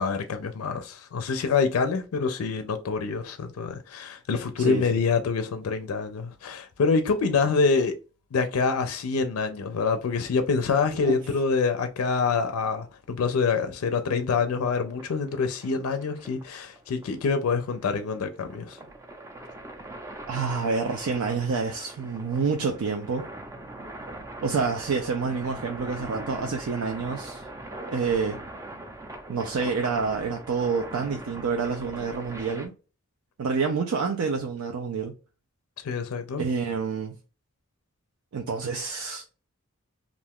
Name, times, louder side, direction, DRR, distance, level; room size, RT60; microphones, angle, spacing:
voice 1, 0.0-8.0 8.3-18.8 35.8-36.4, left 5 dB, 80° left, 0.4 m, -26 dB
voice 2, 4.6-5.0 11.0-11.2 20.3-23.3 24.4-27.4 27.9-28.4 29.3-32.7 33.4-35.1 36.4-37.1 38.3-39.3, right 5 dB, 80° right, 0.4 m, -28 dB
sound 1, 14.3-32.7, right 1 dB, 15° right, 0.4 m, -41 dB
2.4 x 2.3 x 3.4 m
head